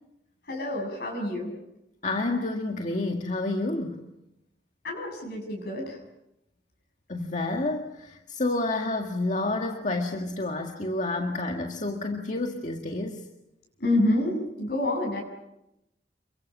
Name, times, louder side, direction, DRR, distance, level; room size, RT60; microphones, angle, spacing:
voice 1, 0.4-1.5 4.8-6.0 13.8-15.2, left 1 dB, 65° left, 0 dB, 7.4 m, -28 dB
voice 2, 2.0-4.0 7.1-13.2, left 2 dB, 45° left, 2 dB, 1.8 m, -29 dB
29.0 x 23.0 x 6.1 m, 0.87 s
head